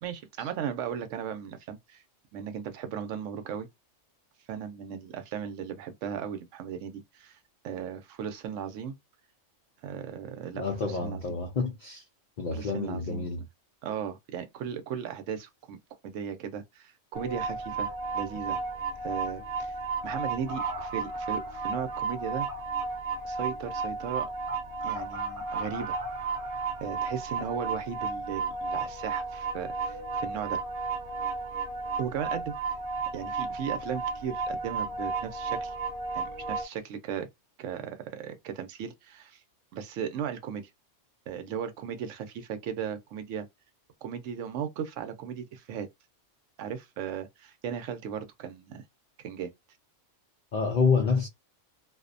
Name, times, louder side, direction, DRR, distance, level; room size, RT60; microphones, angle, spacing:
voice 1, 0.0-2.0 2.3-3.7 4.5-7.4 7.6-8.9 9.8-11.2 12.5-13.3 13.8-15.8 16.0-18.6 19.0-19.7 20.0-22.5 23.2-24.3 24.8-26.0 26.8-30.6 32.0-32.8 33.1-35.7 36.1-37.3 37.6-39.4 39.7-40.7 41.3-43.5 44.0-45.9 46.6-48.8 49.2-49.5, right 8 dB, 85° right, 1.0 m, -36 dB
voice 2, 10.5-12.0 12.4-13.4 50.5-51.3, left 5 dB, 55° left, 0.5 m, -28 dB
sound 1, 17.1-36.6, right 4 dB, 40° right, 0.6 m, -33 dB
2.5 x 2.1 x 2.5 m
omnidirectional pair, 1.3 m